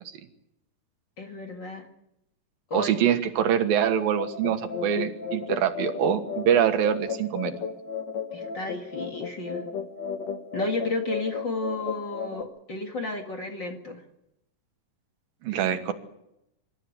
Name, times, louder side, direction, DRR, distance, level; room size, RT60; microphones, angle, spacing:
voice 1, 1.2-1.9 2.7-3.0 8.3-9.6 10.5-14.0 15.5-15.8, left 2 dB, 40° left, 3 dB, 2.1 m, -32 dB
voice 2, 2.7-7.5 15.4-15.9, right 9 dB, 85° right, 8 dB, 3.2 m, -24 dB
sound 1, 4.2-12.4, left 6 dB, 85° left, 1.0 m, -34 dB
25.5 x 13.5 x 9.5 m, 0.84 s
omnidirectional pair, 4.0 m